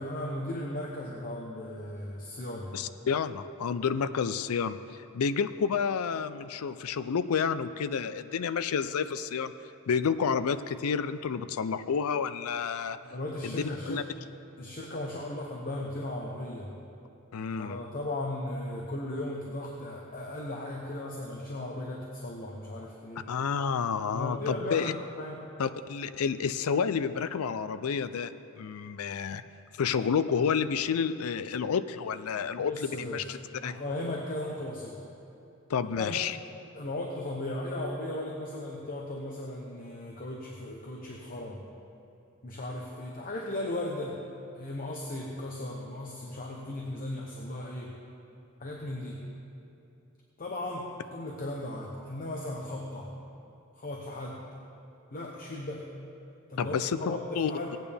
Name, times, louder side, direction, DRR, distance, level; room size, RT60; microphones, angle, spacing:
voice 1, 0.0-2.8 13.0-14.3 14.6-16.7 17.6-23.3 24.1-25.4 32.6-33.3 33.6-35.0 35.9-36.2 36.7-41.6 42.4-44.2 44.5-47.9 48.6-49.2 50.4-53.1 53.7-54.4 55.1-55.9 56.5-57.7, left 1 dB, 40° left, -1 dB, 0.9 m, -36 dB
voice 2, 2.7-9.5 9.9-13.0 13.4-13.6 13.9-14.0 17.3-17.8 23.3-24.9 25.6-29.4 29.8-33.7 35.7-36.4 56.6-57.8, left 6 dB, 80° left, 12 dB, 0.4 m, -30 dB
17.0 x 9.1 x 3.5 m, 2.8 s
head